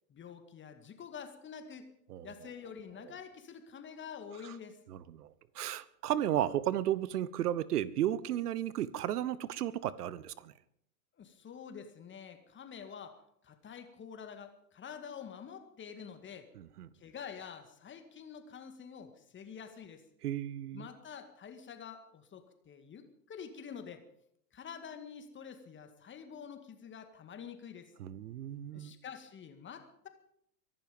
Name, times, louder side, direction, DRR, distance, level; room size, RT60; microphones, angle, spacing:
voice 1, 0.1-1.9 2.2-4.8 11.2-16.5 16.9-20.0 20.7-24.1 24.5-27.9 28.7-30.1, left 7 dB, 25° left, 8 dB, 2.1 m, -47 dB
voice 2, 4.9-10.5 16.6-16.9 20.2-20.9 28.0-28.9, right 12 dB, 70° right, 19 dB, 1.1 m, -34 dB
23.5 x 11.5 x 5.3 m, 0.71 s
hypercardioid pair, 95°, 48 cm